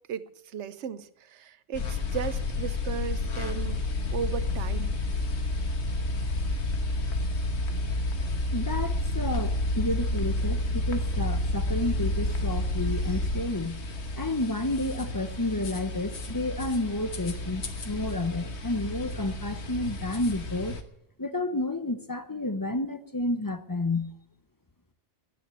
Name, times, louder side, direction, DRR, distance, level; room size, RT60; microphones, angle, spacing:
voice 1, 0.1-3.8 4.1-5.0, right 8 dB, 90° right, 1.0 m, -36 dB
sound 1, 1.7-20.8, left 2 dB, 75° left, 1.5 m, -30 dB
voice 2, 8.5-13.8 14.2-20.8 21.2-24.1, left 2 dB, 20° left, 0.6 m, -31 dB
11.0 x 10.0 x 8.9 m
omnidirectional pair, 1.1 m